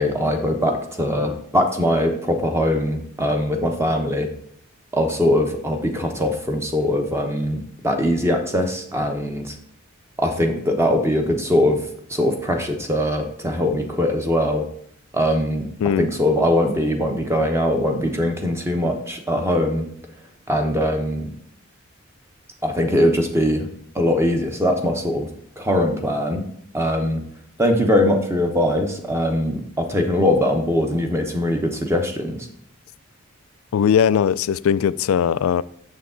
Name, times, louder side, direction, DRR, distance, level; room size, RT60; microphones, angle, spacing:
voice 1, 0.0-4.3 4.9-9.5 10.2-14.7 15.1-15.7 16.0-19.9 20.5-21.3 22.6-23.7 23.9-25.3 25.6-26.4 26.7-27.2 27.6-32.5, left 1 dB, 10° right, 0.9 m, -21 dB
voice 2, 33.7-35.6, left 8 dB, 70° left, 0.3 m, -19 dB
7.0 x 6.6 x 3.8 m
head